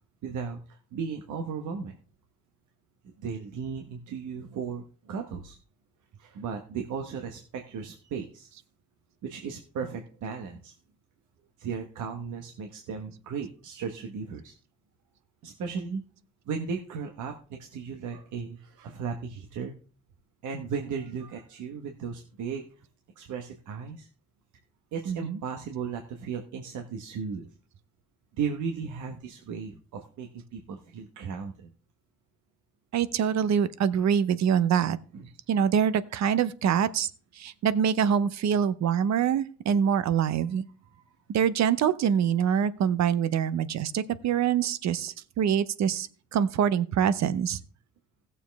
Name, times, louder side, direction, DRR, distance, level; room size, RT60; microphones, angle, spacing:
voice 1, 0.2-2.0 3.0-5.6 6.2-8.5 9.2-10.7 11.6-14.5 15.4-16.0 16.4-19.8 20.4-22.8 23.2-24.1 24.9-27.5 28.4-31.7 35.1-35.3 40.9-41.0, right 6 dB, 80° right, 4 dB, 1.2 m, -36 dB
voice 2, 25.1-25.4 32.9-35.0 35.5-40.6 41.3-47.6, right 8 dB, 65° right, 15 dB, 0.8 m, -25 dB
16.0 x 7.0 x 3.5 m, 0.39 s
cardioid pair, 90°, 30 cm